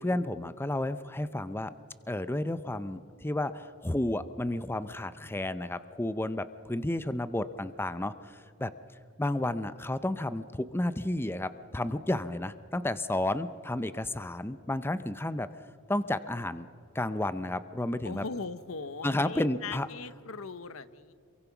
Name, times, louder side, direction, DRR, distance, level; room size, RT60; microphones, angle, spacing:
voice 1, 0.0-1.7 2.1-8.7 9.2-15.5 15.9-16.7 16.9-18.2 19.0-19.9, left 1 dB, 10° left, 13 dB, 0.5 m, -32 dB
voice 2, 18.0-21.1, left 4 dB, 75° left, 14 dB, 0.9 m, -39 dB
27.0 x 23.0 x 6.0 m, 2.3 s
head